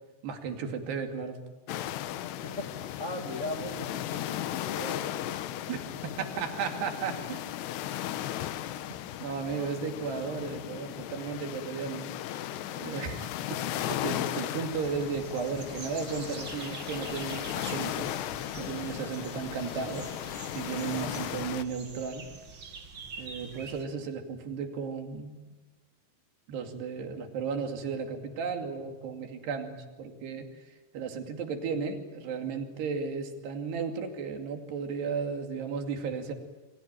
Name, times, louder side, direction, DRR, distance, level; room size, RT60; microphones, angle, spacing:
voice 1, 0.2-1.4 5.7-7.4 8.9-12.1 12.8-18.2 18.6-20.1 20.5-22.3 23.2-25.4 26.5-36.3, right 5 dB, 75° right, 5 dB, 4.6 m, -35 dB
sound 1, 1.7-21.6, left 12 dB, 80° left, 3.2 m, -36 dB
voice 2, 2.4-5.4 6.0-6.1 9.4-9.7, left 1 dB, 40° left, 3 dB, 1.0 m, -39 dB
sound 2, 14.7-23.8, right 4 dB, 35° right, 2.5 m, -46 dB
29.0 x 23.0 x 9.1 m, 1.2 s
omnidirectional pair, 4.8 m